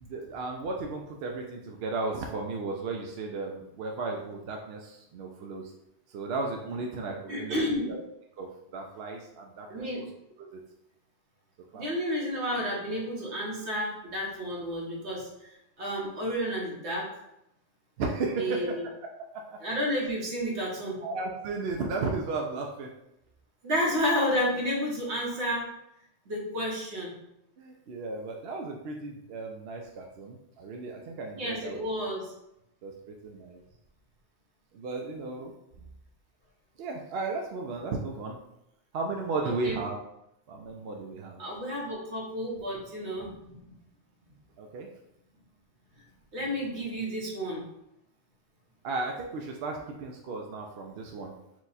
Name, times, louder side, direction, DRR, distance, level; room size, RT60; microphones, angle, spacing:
voice 1, 0.0-5.7 6.1-8.0 8.4-9.8 10.4-10.6 11.7-11.9 18.0-18.8 19.3-19.6 21.0-22.9 27.6-31.8 32.8-33.6 34.7-35.5 35.8-35.9 36.8-38.4 38.9-40.0 40.5-41.4 44.6-44.9 48.8-51.3, right 3 dB, 70° right, 1 dB, 0.8 m, -35 dB
voice 2, 7.3-7.9 9.7-10.1 11.7-15.5 15.8-17.1 18.4-18.9 19.6-21.0 23.6-25.7 26.2-27.1 31.3-32.3 39.4-39.8 41.4-43.7 46.3-47.6, equal, 90° right, -3 dB, 1.5 m, -31 dB
4.6 x 2.3 x 4.0 m, 0.82 s
omnidirectional pair, 1.1 m